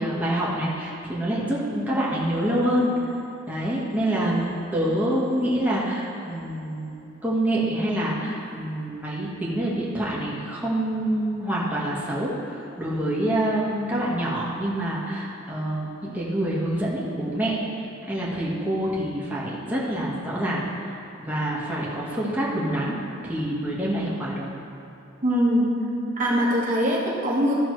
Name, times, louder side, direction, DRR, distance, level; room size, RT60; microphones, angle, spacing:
voice 1, 0.0-2.9 3.5-6.9 7.2-17.6 18.0-20.6 21.2-23.0 23.2-24.5, right 1 dB, 10° right, -7 dB, 1.4 m, -26 dB
voice 2, 25.2-25.7 26.2-27.5, equal, 40° right, -5 dB, 1.2 m, -22 dB
13.5 x 6.0 x 3.2 m, 2.9 s
head